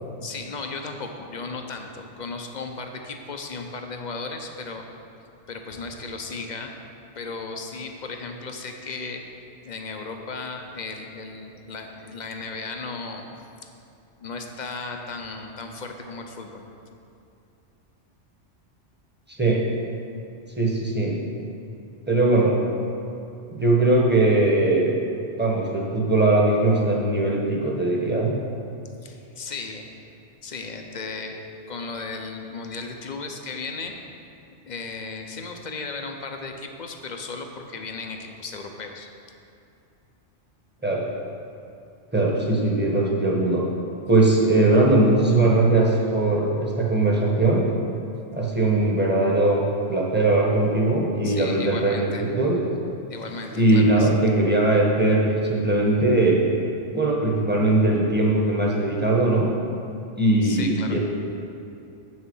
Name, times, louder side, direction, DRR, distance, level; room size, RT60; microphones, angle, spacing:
voice 1, 0.2-4.8 5.5-6.7 7.2-9.2 9.6-13.3 14.2-16.6 29.0-29.9 30.4-31.4 31.7-33.9 34.7-39.1 51.2-52.3 53.1-54.1 60.4-61.0, left 4 dB, 45° left, 4 dB, 0.7 m, -35 dB
voice 2, 19.3-19.6 20.6-21.2 22.1-22.6 23.5-25.0 25.4-28.3 40.8-41.0 42.1-43.6 44.1-47.7 48.3-52.6 53.6-56.4 56.9-59.5 60.2-61.0, right 2 dB, 10° right, -3 dB, 1.1 m, -20 dB
7.9 x 6.4 x 5.5 m, 2.6 s
omnidirectional pair, 1.2 m